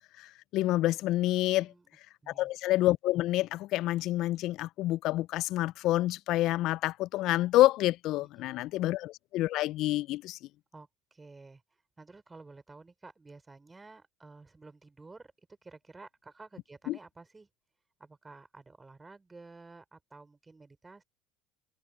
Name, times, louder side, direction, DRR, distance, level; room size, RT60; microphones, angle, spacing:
voice 1, 0.0-1.7 2.3-10.4 16.9-17.0, left 16 dB, 60° left, 0.4 m, -28 dB
voice 2, 1.5-1.9 2.2-2.5 8.2-8.9 10.7-17.5 18.0-21.0, right 3 dB, 20° right, 5.6 m, -52 dB
hypercardioid pair, 80°, 0 cm